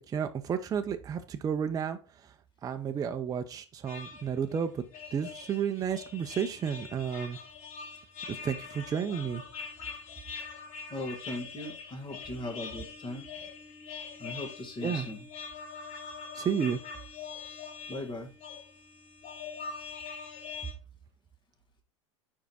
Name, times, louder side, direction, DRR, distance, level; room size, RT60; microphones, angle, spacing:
voice 1, 0.0-2.3 2.6-4.8 5.1-7.4 8.4-9.4 14.8-15.1 16.3-16.8, right 7 dB, 25° right, 7 dB, 0.5 m, -32 dB
sound 1, 3.9-20.7, left 5 dB, 45° left, 1.7 m, -43 dB
voice 2, 10.9-13.3 14.2-15.3 17.9-18.3, left 2 dB, 30° left, 4 dB, 1.8 m, -38 dB
4.9 x 4.7 x 4.2 m, 0.34 s
hypercardioid pair, 100°, 15 cm